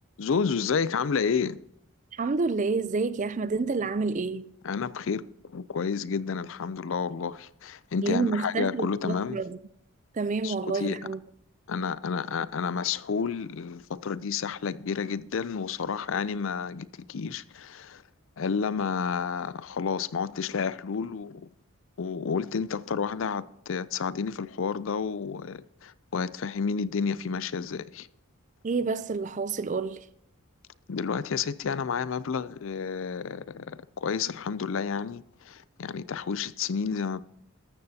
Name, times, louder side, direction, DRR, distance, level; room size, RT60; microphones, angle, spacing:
voice 1, 0.2-1.6 4.6-5.2 5.5-9.4 10.4-11.0 11.7-18.0 18.4-21.5 22.0-28.1 30.9-37.2, left 6 dB, 60° left, 0.4 m, -30 dB
voice 2, 2.1-4.5 8.0-9.6 10.1-11.2 28.6-30.1, right 4 dB, 35° right, 0.4 m, -28 dB
13.5 x 13.0 x 2.8 m
head